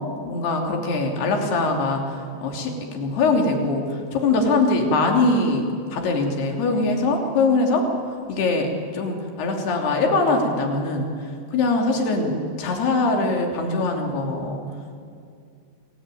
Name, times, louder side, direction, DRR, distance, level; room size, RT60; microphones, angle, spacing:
voice 1, 0.2-7.9 8.3-11.1 11.5-14.6, left 3 dB, 60° left, 2 dB, 4.8 m, -22 dB
29.0 x 20.5 x 9.2 m, 2.4 s
omnidirectional pair, 5.3 m